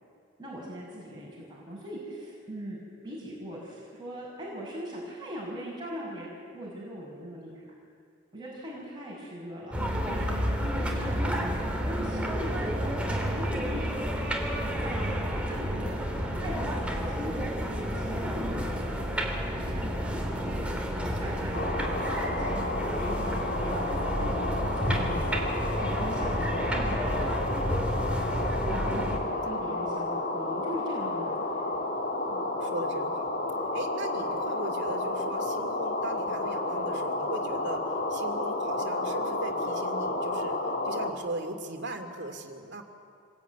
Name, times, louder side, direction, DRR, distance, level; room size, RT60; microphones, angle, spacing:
voice 1, 0.4-2.8 3.0-7.6 8.3-13.9 14.6-15.1 15.5-17.5 17.9-18.9 19.6-19.9 20.3-20.7 21.0-23.8 24.2-25.2 25.7-27.5 28.6-32.0 32.3-32.4, equal, 20° right, -6 dB, 5.8 m, -40 dB
sound 1, 9.7-29.2, equal, 5° right, 3.3 m, -30 dB
sound 2, 21.5-41.1, left 2 dB, 50° left, 2.8 m, -31 dB
voice 2, 32.6-33.3 33.7-42.8, right 2 dB, 55° right, 5 dB, 2.7 m, -39 dB
26.5 x 21.5 x 9.5 m, 2.3 s
head